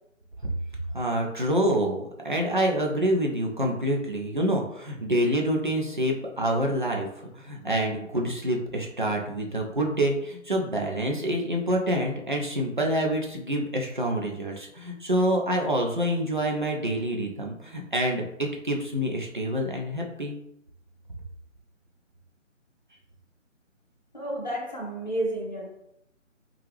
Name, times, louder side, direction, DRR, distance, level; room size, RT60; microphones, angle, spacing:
voice 1, 0.9-20.4, right 1 dB, 40° right, 0.4 m, -27 dB
voice 2, 24.1-25.7, right 1 dB, 40° left, 0.4 m, -31 dB
2.7 x 2.3 x 3.2 m
figure-of-eight pair, 160°, 39 cm